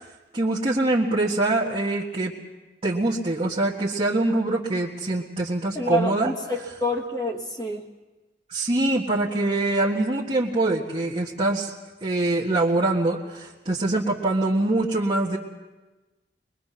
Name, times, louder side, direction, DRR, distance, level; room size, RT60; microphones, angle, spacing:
voice 1, 0.3-2.3 2.8-6.3 8.5-11.7 12.0-15.4, right 2 dB, 35° right, -4 dB, 1.6 m, -24 dB
voice 2, 5.7-7.9, left 1 dB, 25° left, 0 dB, 1.7 m, -28 dB
23.0 x 22.0 x 5.9 m, 1.2 s
head